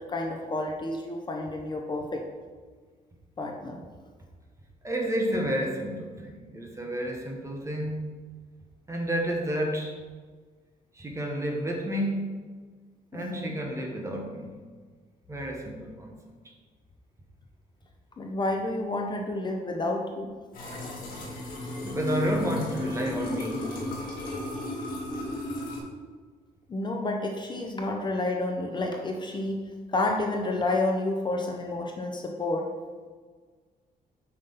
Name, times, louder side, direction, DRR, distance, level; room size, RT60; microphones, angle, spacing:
voice 1, 0.1-2.2 3.4-3.8 13.1-13.5 18.2-20.3 26.7-29.6 29.9-32.7, left 2 dB, 30° left, 1 dB, 0.6 m, -30 dB
voice 2, 4.8-8.0 8.9-9.9 10.9-12.3 13.1-14.6 15.3-16.2 21.8-23.7, equal, 20° right, 1 dB, 1.0 m, -30 dB
sound 1, 20.5-25.8, left 1 dB, 65° left, 1.8 m, -34 dB
5.5 x 5.2 x 3.9 m, 1.5 s
cardioid pair, 130°, 16 cm